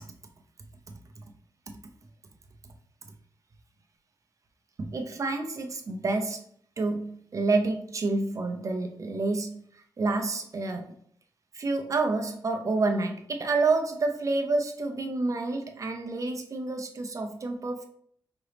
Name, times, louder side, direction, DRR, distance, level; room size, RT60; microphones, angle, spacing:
voice 1, 0.9-1.2 1.7-1.8 4.8-6.4 6.8-10.9 11.5-17.9, right 3 dB, 40° right, 4 dB, 0.6 m, -29 dB
5.2 x 2.9 x 3.3 m, 0.63 s
wide cardioid pair, 135°, 8 cm